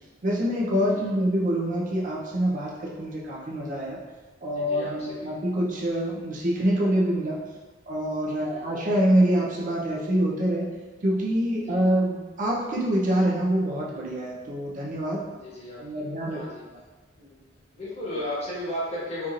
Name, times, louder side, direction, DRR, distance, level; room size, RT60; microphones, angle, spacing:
voice 1, 0.2-4.0 4.4-7.4 7.9-10.7 11.0-15.2 15.8-16.4, right 1 dB, 45° right, -4 dB, 0.6 m, -25 dB
voice 2, 4.5-5.3 8.3-8.8 11.5-11.9 15.3-16.6 17.2-17.4 17.7-19.3, left 1 dB, 35° left, -8 dB, 1.2 m, -35 dB
4.4 x 2.9 x 2.4 m, 1.2 s
head